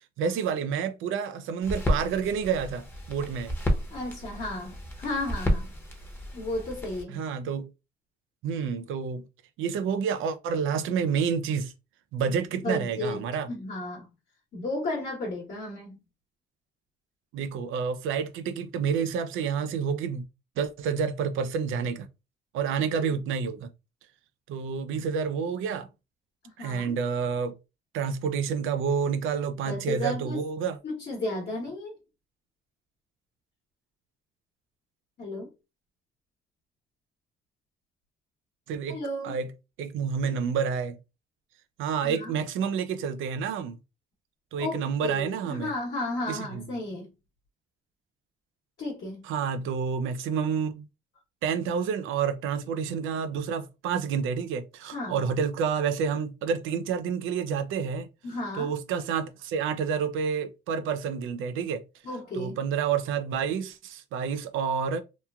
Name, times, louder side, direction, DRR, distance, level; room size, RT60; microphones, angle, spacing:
voice 1, 0.2-3.5 7.1-7.7 8.4-9.2 9.6-11.7 12.1-13.5 17.3-20.2 20.6-22.1 22.5-23.7 24.5-25.9 26.6-27.6 27.9-30.8 38.7-39.0 39.2-39.5 39.8-41.0 41.8-43.8 44.5-45.7 46.3-46.6 49.3-50.9 51.4-58.1 58.6-61.8 62.4-65.0, right 6 dB, 85° right, 0.4 m, -29 dB
sound 1, 1.6-7.0, equal, 10° left, 0.8 m, -31 dB
voice 2, 3.9-5.7 6.3-7.2 12.6-14.1 14.5-16.0 23.0-23.1 26.4-26.9 29.6-30.5 30.8-31.9 35.2-35.5 38.9-39.3 42.0-42.3 44.6-47.1 48.8-49.3 54.9-55.2 58.2-58.7 62.0-62.6, left 2 dB, 55° left, 1.1 m, -33 dB
2.9 x 2.2 x 2.3 m
cardioid pair, 90°, 20 cm